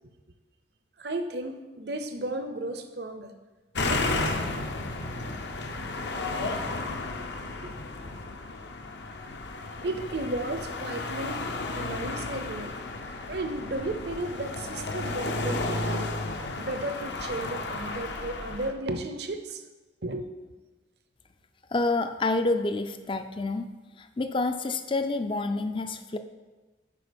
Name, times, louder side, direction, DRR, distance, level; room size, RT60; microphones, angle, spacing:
voice 1, 1.0-3.3 3.8-4.3 7.6-7.8 9.8-12.8 13.3-16.1 16.6-19.6 20.0-20.3, right 2 dB, 55° right, 8 dB, 0.7 m, -34 dB
sound 1, 3.7-18.7, left 2 dB, 60° left, 0.7 m, -33 dB
voice 2, 21.7-23.7 24.0-26.2, left 2 dB, 25° left, 8 dB, 0.4 m, -28 dB
8.4 x 5.1 x 5.2 m, 1.2 s
head